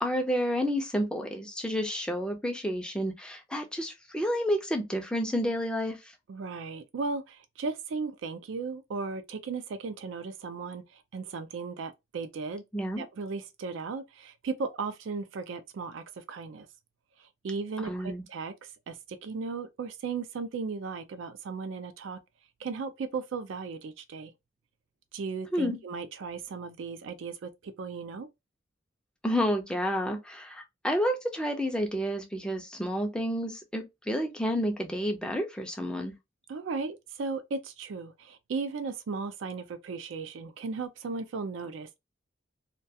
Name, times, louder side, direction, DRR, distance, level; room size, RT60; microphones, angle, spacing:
voice 1, 0.0-6.0 12.7-13.0 17.8-18.2 25.5-25.8 29.2-36.1, equal, 5° left, 0.4 m, -30 dB
voice 2, 6.3-12.6 13.0-16.7 17.2-18.5 18.9-22.2 22.6-24.3 25.1-28.3 36.5-42.0, right 4 dB, 70° right, 0.4 m, -36 dB
2.3 x 2.2 x 2.6 m
head